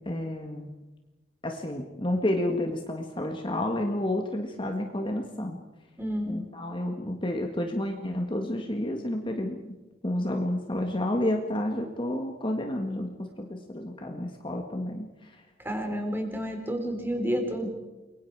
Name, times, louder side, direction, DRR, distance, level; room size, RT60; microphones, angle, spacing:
voice 1, 0.1-0.7 1.4-5.6 6.3-9.8 10.0-15.3, left 1 dB, 25° left, 3 dB, 1.8 m, -30 dB
voice 2, 6.0-6.4 15.6-17.7, equal, 10° right, 4 dB, 3.9 m, -30 dB
30.0 x 22.5 x 4.8 m, 1.1 s
head